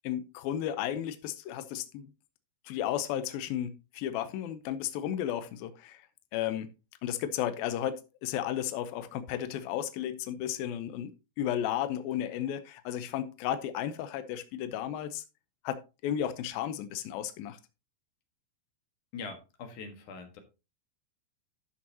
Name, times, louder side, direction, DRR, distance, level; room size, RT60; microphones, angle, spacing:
voice 1, 0.0-2.1 2.7-6.0 6.3-6.7 7.0-11.1 11.4-15.2 15.6-17.6, left 10 dB, 90° left, 2.1 m, -33 dB
voice 2, 19.1-20.4, left 4 dB, 60° left, 2.3 m, -42 dB
12.0 x 7.6 x 2.8 m
omnidirectional pair, 5.2 m